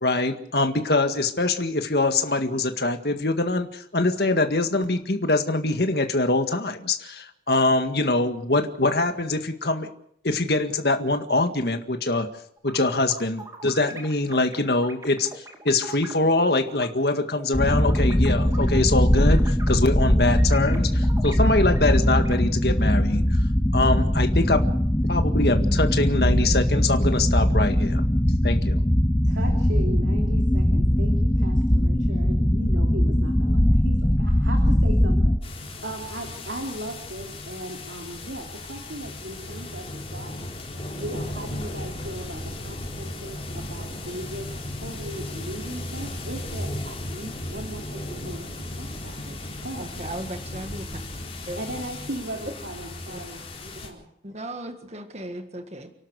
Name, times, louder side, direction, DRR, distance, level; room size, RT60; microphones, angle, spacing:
voice 1, 0.0-9.9 10.2-12.3 12.6-23.4 23.7-24.6 25.1-28.0 28.4-28.8, left 2 dB, 60° left, 6 dB, 1.9 m, -24 dB
sound 1, 12.6-16.9 17.3-22.4, right 1 dB, 20° right, 2.8 m, -42 dB
sound 2, 17.5-35.4, equal, 15° left, 0.8 m, -21 dB
voice 2, 29.2-40.3 41.0-48.5 48.8-50.2 51.6-54.1, right 1 dB, 80° right, 2 dB, 3.2 m, -38 dB
sound 3, 35.4-53.9, left 1 dB, 35° left, 4.3 m, -36 dB
voice 3, 49.8-51.0 51.5-51.6 52.5-52.6 53.1-53.2 54.2-55.9, right 1 dB, 35° right, 6 dB, 1.8 m, -36 dB
29.5 x 12.0 x 8.2 m, 0.69 s
head